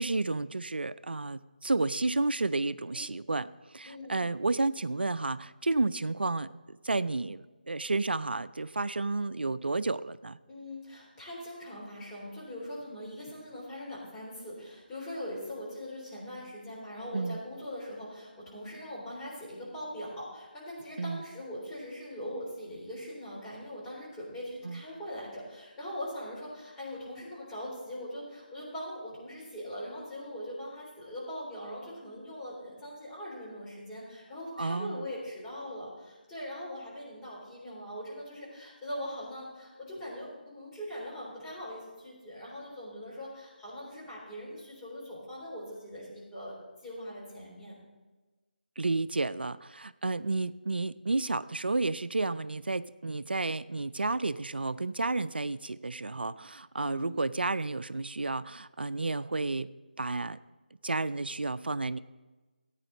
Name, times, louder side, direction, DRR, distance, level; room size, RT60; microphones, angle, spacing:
voice 1, 0.0-10.4 17.1-17.4 21.0-21.2 24.6-24.8 34.6-35.1 48.8-59.7 60.0-60.4 60.8-62.0, right 3 dB, 90° right, 15 dB, 0.4 m, -31 dB
voice 2, 3.9-4.2 10.5-46.6 46.8-47.7 56.8-57.1, equal, 10° left, -7 dB, 3.6 m, -41 dB
15.0 x 9.0 x 4.0 m, 1.2 s
figure-of-eight pair, 160°, 5 cm